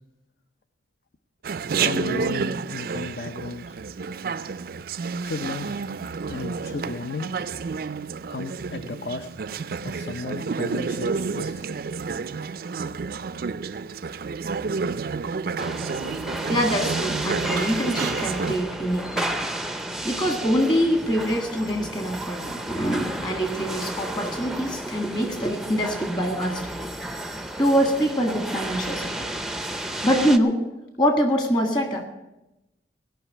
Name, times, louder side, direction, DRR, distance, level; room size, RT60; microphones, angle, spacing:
Chatter, 1.4-18.5, right 5 dB, 50° right, 0.4 m, -30 dB
voice 1, 1.7-3.8 5.2-5.8 6.3-7.3 8.3-9.3 9.8-11.7, left 3 dB, 55° left, 9 dB, 0.7 m, -34 dB
sound 1, 15.6-30.4, right 1 dB, ahead, 0.5 m, -32 dB
voice 2, 16.4-19.5 20.0-26.7 27.6-29.3 30.0-30.6 31.0-32.1, equal, 25° left, 5 dB, 1.7 m, -24 dB
17.0 x 5.8 x 9.6 m, 0.95 s
head